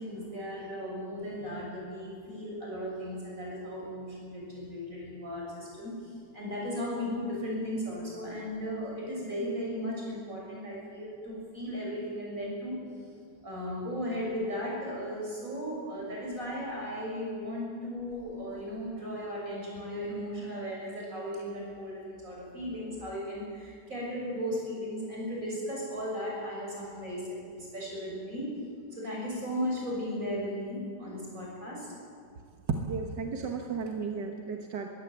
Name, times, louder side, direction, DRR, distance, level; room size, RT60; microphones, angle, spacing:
voice 1, 0.0-12.8 13.4-27.2 27.5-28.6 28.9-31.9, equal, 50° right, -3 dB, 7.1 m, -36 dB
voice 2, 32.7-34.9, right 5 dB, 90° right, 3 dB, 2.0 m, -33 dB
21.5 x 16.5 x 8.1 m, 2.2 s
omnidirectional pair, 1.8 m